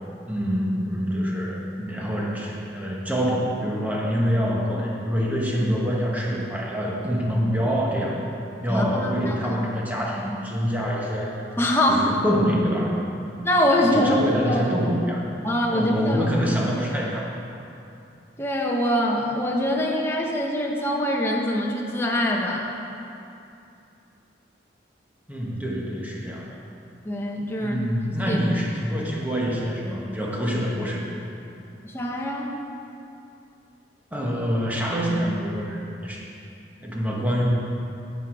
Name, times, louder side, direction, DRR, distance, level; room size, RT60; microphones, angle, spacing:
voice 1, 0.3-8.1 8.6-11.4 11.9-12.9 13.9-15.3 15.7-17.4 25.3-26.6 27.6-31.0 34.1-36.3 36.8-37.4, equal, 10° right, -3 dB, 1.3 m, -26 dB
voice 2, 8.7-9.4 11.6-12.1 13.4-14.1 14.4-14.7 15.4-16.3 18.4-22.8 27.0-27.8 28.3-28.4 31.8-32.5, left 1 dB, 15° left, -2 dB, 1.0 m, -24 dB
10.0 x 8.5 x 4.8 m, 2.7 s
head